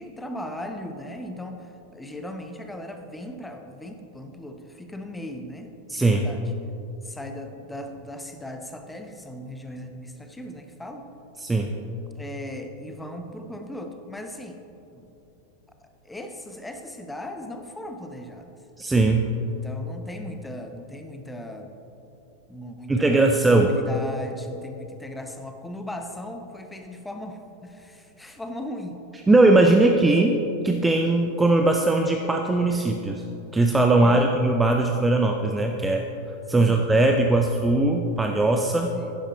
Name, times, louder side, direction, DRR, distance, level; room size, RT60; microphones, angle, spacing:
voice 1, 0.0-6.5 7.0-11.1 12.2-14.6 14.9-15.1 16.0-18.5 19.4-21.7 22.5-29.0 29.8-30.3 34.0-34.3 36.6-36.8 38.9-39.1, left 1 dB, 5° left, 5 dB, 0.9 m, -38 dB
voice 2, 5.9-6.3 11.4-11.7 18.8-19.3 22.9-23.7 29.3-30.4 30.6-33.2 33.5-36.0 36.5-38.9, right 2 dB, 10° right, 3 dB, 0.6 m, -20 dB
11.5 x 10.0 x 4.1 m, 2.9 s
figure-of-eight pair, 90°, 0 cm